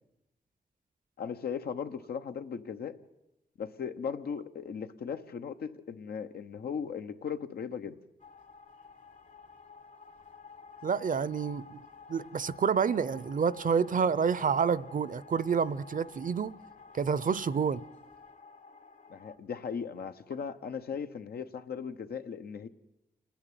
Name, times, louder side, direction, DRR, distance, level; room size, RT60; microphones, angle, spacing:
voice 1, 1.2-3.0 3.6-8.0 19.1-22.7, left 6 dB, 90° left, 1.0 m, -37 dB
sound 1, 8.2-19.4, left 5 dB, 55° left, 1.6 m, -51 dB
voice 2, 10.8-11.8 12.1-16.5 16.9-17.8, right 6 dB, 60° right, 0.7 m, -28 dB
27.0 x 10.5 x 9.4 m
cardioid pair, 70°, 16 cm